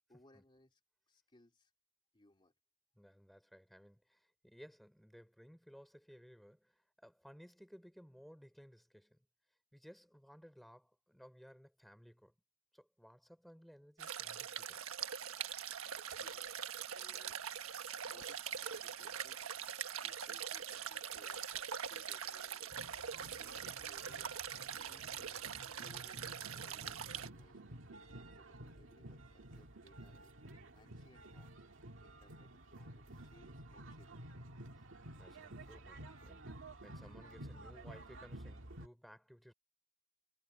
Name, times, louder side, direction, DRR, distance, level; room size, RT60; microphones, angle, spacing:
voice 1, 0.1-0.8 1.1-1.7 2.1-2.5 15.9-17.4 18.1-19.4 20.0-22.7 23.3-24.4 24.8-27.8 28.1-30.3 30.7-31.6 32.0-34.1, left 1 dB, 25° left, 3.0 m, -66 dB
voice 2, 3.0-9.3 9.7-12.3 12.7-14.8 35.1-39.5, equal, ahead, 4.1 m, -59 dB
sound 1, 14.0-27.3, right 8 dB, 90° right, 1.4 m, -43 dB
sound 2, 15.9-24.6, left 8 dB, 40° left, 5.7 m, -68 dB
sound 3, 22.7-38.9, right 1 dB, 65° right, 2.2 m, -52 dB
head